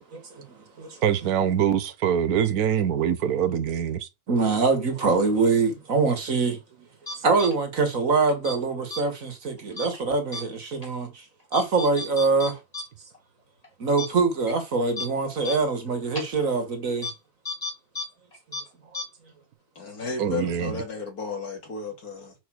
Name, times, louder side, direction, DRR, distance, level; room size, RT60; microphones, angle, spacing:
voice 1, 0.1-1.0 4.3-6.6 7.2-11.2 11.5-12.6 13.8-17.1 18.9-19.0, right 4 dB, 60° right, 2.1 m, -24 dB
voice 2, 1.0-4.1 20.2-20.8, right 9 dB, 80° right, 1.4 m, -24 dB
sound 1, 7.1-7.5 8.3-8.6 8.9-9.0 9.8-10.0 10.3-10.4 10.8-10.9 11.5-12.8 13.1-13.2 13.6-13.7 14.0-14.1 14.5-14.6 15.0-15.1 15.4-15.6 16.2-16.3 17.0-17.1 17.5-18.1 18.3-18.6 18.9-19.0, left 3 dB, 25° left, 2.8 m, -32 dB
voice 3, 19.7-22.3, left 4 dB, 80° left, 3.2 m, -33 dB
6.2 x 4.9 x 6.3 m
omnidirectional pair, 1.6 m